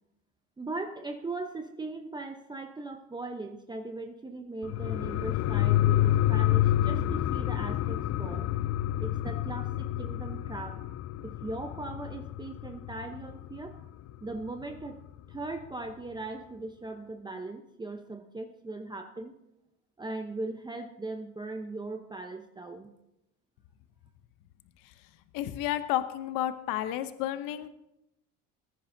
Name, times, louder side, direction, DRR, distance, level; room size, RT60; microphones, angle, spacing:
voice 1, 0.6-8.5 9.0-10.8 11.2-13.9 14.2-15.0 15.3-19.3 20.0-22.9, right 2 dB, 15° right, 5 dB, 0.8 m, -39 dB
sound 1, 4.6-13.7 14.1-14.2, left 13 dB, 50° left, 0.5 m, -28 dB
voice 2, 25.3-27.7, left 13 dB, 80° left, 11 dB, 0.8 m, -31 dB
20.0 x 10.0 x 2.7 m, 0.87 s
cardioid pair, 110°, 33 cm